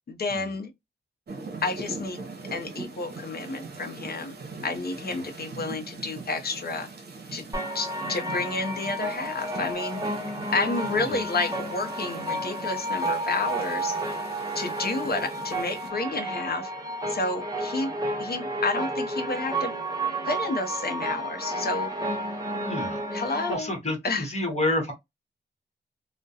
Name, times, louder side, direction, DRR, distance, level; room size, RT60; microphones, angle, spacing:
voice 1, 0.1-0.7 1.6-4.3 4.6-6.9 7.3-7.5 7.7-10.0 10.5-14.0 14.5-16.7 17.1-19.7 20.2-21.9 23.1-23.7 24.0-24.3, left 3 dB, 55° left, 0.6 m, -30 dB
sound 1, 1.3-15.9, right 3 dB, 55° right, 0.8 m, -42 dB
sound 2, 7.5-23.5, right 1 dB, 20° right, 0.9 m, -31 dB
voice 2, 22.6-23.0 23.5-24.9, left 1 dB, 35° left, 1.0 m, -28 dB
2.3 x 2.1 x 2.6 m
wide cardioid pair, 80°, 19 cm